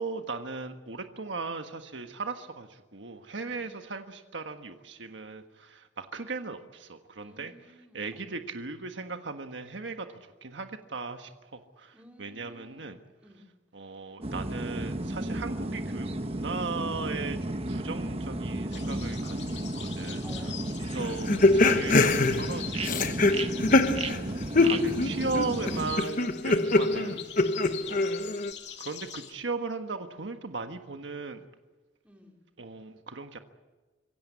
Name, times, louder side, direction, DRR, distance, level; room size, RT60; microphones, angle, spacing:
voice 1, 0.0-7.5 7.9-13.0 13.7-20.4 20.8-23.5 23.8-27.3 27.9-28.1 28.8-31.4 32.6-33.4, right 4 dB, 85° right, 6 dB, 1.5 m, -37 dB
voice 2, 7.2-8.3 11.9-12.9 13.2-13.4 20.2-21.3 27.7-28.0 32.0-32.4, equal, 5° right, 0 dB, 4.9 m, -53 dB
sound 1, 14.2-26.0, right 1 dB, 35° right, 1.2 m, -33 dB
sound 2, 18.7-29.3, left 10 dB, 70° left, 2.5 m, -44 dB
sound 3, 21.0-24.3 24.5-28.5, left 2 dB, 45° left, 1.1 m, -24 dB
26.0 x 16.5 x 8.5 m, 1.2 s
head